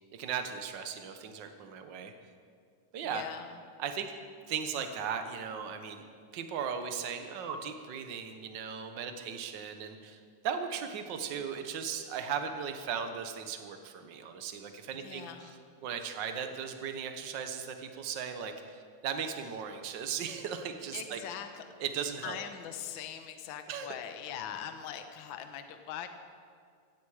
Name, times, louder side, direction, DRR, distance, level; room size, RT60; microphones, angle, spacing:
voice 1, 0.1-2.1 2.9-3.2 3.8-4.1 4.5-6.0 6.3-15.5 15.8-21.2 21.8-22.4 23.7-23.9, right 7 dB, 65° right, 7 dB, 1.1 m, -37 dB
voice 2, 3.0-3.6 14.9-15.7 20.9-21.6 22.2-26.1, left 9 dB, 60° left, 7 dB, 1.3 m, -42 dB
17.0 x 15.0 x 4.9 m, 2.1 s
omnidirectional pair, 3.4 m